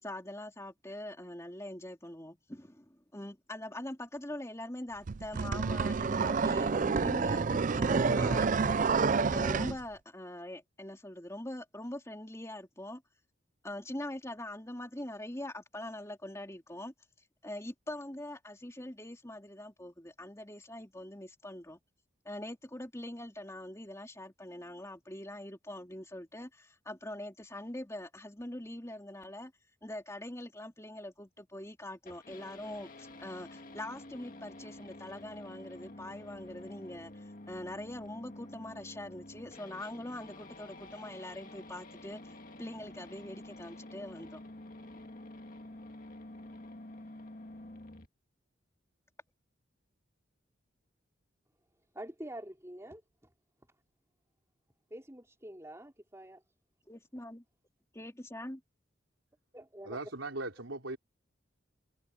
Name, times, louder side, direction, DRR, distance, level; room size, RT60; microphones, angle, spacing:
voice 1, 0.0-8.9 9.3-13.0 13.6-16.9 17.4-21.8 22.2-29.5 29.8-44.4 56.9-57.4 57.9-58.6, left 1 dB, 15° left, 3.3 m, -43 dB
sound 1, 5.1-9.8, right 4 dB, 40° right, 0.4 m, -28 dB
sound 2, 32.1-48.1, left 1 dB, 45° left, 2.0 m, -49 dB
voice 2, 51.9-53.0 54.9-56.4 59.5-60.0, right 1 dB, 15° right, 4.2 m, -46 dB
voice 3, 59.8-61.0, right 2 dB, 90° right, 4.1 m, -38 dB
head